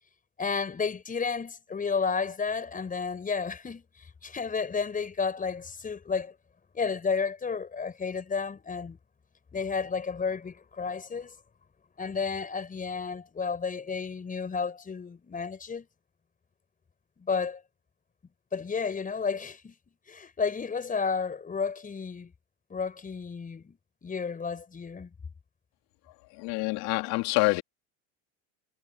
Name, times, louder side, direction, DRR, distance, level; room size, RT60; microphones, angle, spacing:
voice 1, 0.4-6.3 6.7-9.0 9.5-11.3 12.0-15.9 17.2-17.6 18.5-19.7 20.1-22.3 22.7-25.1, left 5 dB, 20° left, 5.8 m, -32 dB
voice 2, 26.3-27.6, left 24 dB, 65° left, 2.8 m, -26 dB
supercardioid pair, 125°, 41 cm